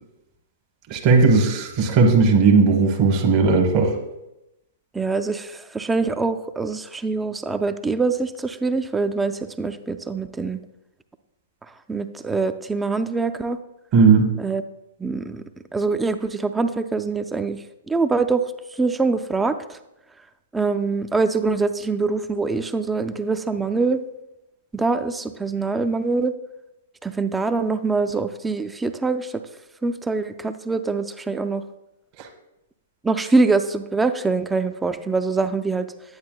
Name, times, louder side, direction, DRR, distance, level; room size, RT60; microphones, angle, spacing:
voice 1, 0.9-4.0 13.9-14.3, right 4 dB, 40° right, 2 dB, 1.1 m, -16 dB
voice 2, 4.9-10.6 11.9-13.6 14.4-14.6 15.0-15.4 15.7-17.6 17.9-18.5 18.8-19.8 20.5-24.0 24.7-26.3 27.0-29.3 29.8-31.6 33.0-35.9, right 3 dB, 10° right, 9 dB, 0.4 m, -24 dB
9.5 x 8.5 x 2.2 m, 0.90 s
hypercardioid pair, 115°, 0 cm